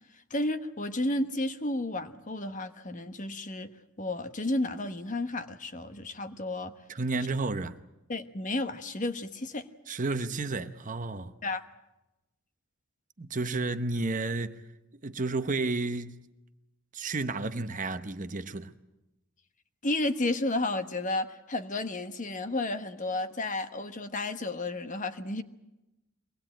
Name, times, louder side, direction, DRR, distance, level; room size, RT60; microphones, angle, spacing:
voice 1, 0.3-3.7 4.0-6.7 8.1-9.7 11.4-11.6 19.8-25.4, left 2 dB, 35° left, 1.2 m, -32 dB
voice 2, 6.9-7.8 9.9-11.3 13.2-14.6 15.0-16.2 16.9-18.7, right 3 dB, 35° right, 0.9 m, -31 dB
24.0 x 19.5 x 9.0 m
head